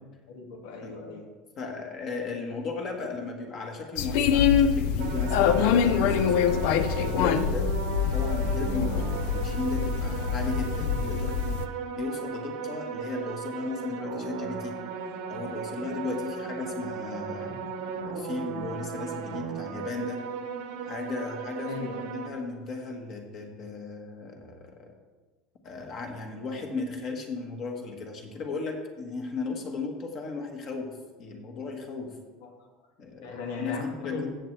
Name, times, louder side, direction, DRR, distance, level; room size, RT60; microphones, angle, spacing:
voice 1, 0.3-1.3 8.7-9.0 17.3-17.8 21.7-22.2 32.4-32.5 33.2-34.3, left 4 dB, 80° left, 2 dB, 2.0 m, -38 dB
voice 2, 1.6-7.8 8.1-9.0 9.3-11.6 12.0-14.8 15.3-17.6 17.9-20.3 20.9-24.9 25.6-30.9 31.2-32.2 33.0-34.3, left 3 dB, 30° left, 3 dB, 1.4 m, -35 dB
sound 1, 4.0-11.6, left 7 dB, 65° left, 0.5 m, -25 dB
sound 2, 5.0-22.3, right 6 dB, 60° right, 0.9 m, -36 dB
14.5 x 7.7 x 3.3 m, 1.3 s
cardioid pair, 180°, 0 cm